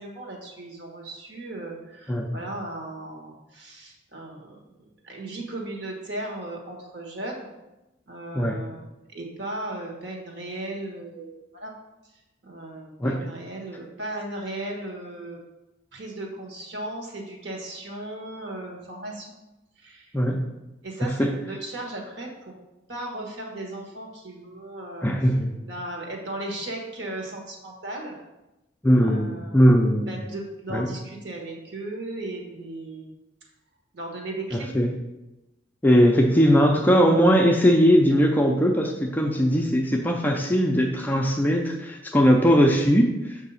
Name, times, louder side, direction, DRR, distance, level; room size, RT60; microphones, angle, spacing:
voice 1, 0.0-4.6 5.0-7.5 8.1-8.8 9.1-11.7 12.4-15.4 15.9-19.3 19.8-20.1 20.8-22.5 22.9-25.1 25.6-28.2 29.0-33.1 33.9-34.7, right 2 dB, 60° right, 0 dB, 1.2 m, -36 dB
voice 2, 21.0-21.3 25.0-25.5 28.8-30.2 30.7-30.9 34.5-34.9 35.8-43.4, equal, 10° left, 1 dB, 0.4 m, -20 dB
6.6 x 2.7 x 5.4 m, 0.99 s
head